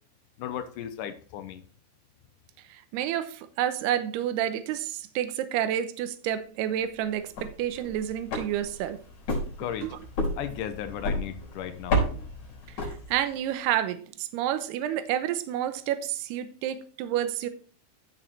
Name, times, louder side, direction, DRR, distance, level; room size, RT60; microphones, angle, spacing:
voice 1, 0.4-1.6 9.6-9.9 10.4-12.0, left 9 dB, 90° left, 1.8 m, -35 dB
voice 2, 2.7-9.0 9.8-10.0 12.8-17.5, right 11 dB, 80° right, 2.9 m, -29 dB
sound 1, 7.2-13.5, equal, 45° left, 5.0 m, -32 dB
14.5 x 6.3 x 3.2 m
omnidirectional pair, 4.8 m